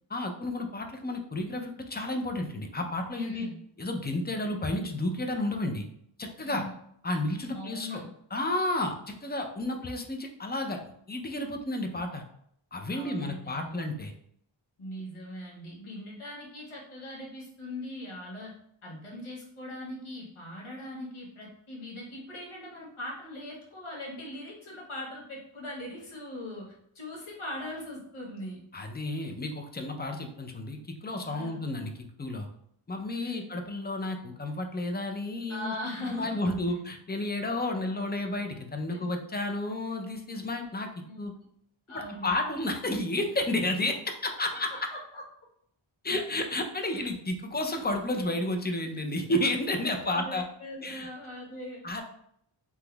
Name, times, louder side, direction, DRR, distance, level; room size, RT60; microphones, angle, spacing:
voice 1, 0.1-3.5 3.8-5.8 6.2-6.6 7.0-8.0 8.3-12.2 12.7-14.1 28.7-31.9 32.2-32.5 32.9-35.7 36.0-41.3 41.9-44.9 46.0-50.4 50.8-51.1 51.8-52.0, left 2 dB, 20° left, 4 dB, 0.5 m, -31 dB
voice 2, 3.2-3.6 6.4-6.8 7.5-8.1 12.9-13.8 14.8-18.5 18.8-28.6 31.3-31.6 33.2-33.6 35.5-36.4 38.9-39.4 41.1-41.3 41.9-42.3 45.1-45.2 50.0-51.8, left 1 dB, 85° left, -4 dB, 1.1 m, -40 dB
3.5 x 2.9 x 2.3 m, 0.69 s
wide cardioid pair, 40°, 48 cm